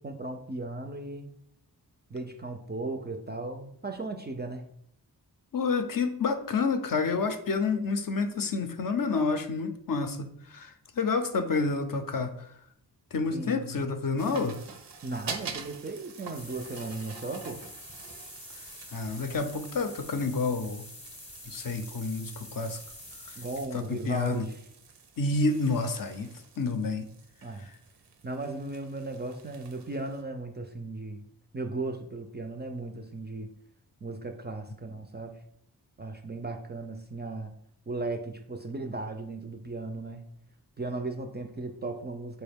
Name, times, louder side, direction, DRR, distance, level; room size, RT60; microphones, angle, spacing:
voice 1, 0.0-1.3 2.1-4.6 13.3-13.9 15.0-17.6 23.4-24.6 27.4-27.7 28.2-31.3 31.5-33.5 34.0-35.4 36.0-37.5 37.9-40.3 40.8-42.4, right 2 dB, 25° right, 5 dB, 0.3 m, -36 dB
voice 2, 5.5-12.5 13.1-14.6 18.9-20.8 21.5-22.8 23.3-23.4 23.7-24.5 25.2-27.0 27.6-27.7, left 4 dB, 55° left, 7 dB, 0.5 m, -29 dB
sound 1, 14.2-30.2, right 5 dB, 80° right, 0.5 m, -47 dB
sound 2, 16.3-23.7, left 1 dB, 15° left, 0.7 m, -47 dB
4.0 x 2.2 x 3.4 m, 0.69 s
cardioid pair, 45°, 41 cm